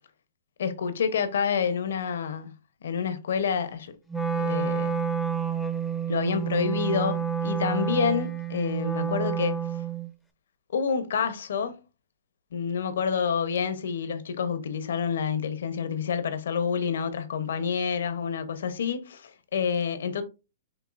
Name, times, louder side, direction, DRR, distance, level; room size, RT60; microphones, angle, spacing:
voice 1, 0.6-2.5 2.8-3.9 4.3-5.0 6.1-9.5 10.7-11.7 12.5-20.2, left 6 dB, 75° left, 0.8 m, -28 dB
Wind instrument woodwind instrument, 4.1-10.1, right 7 dB, 5° left, 0.6 m, -29 dB
6.2 x 2.7 x 2.5 m
hypercardioid pair, 140°, 0 cm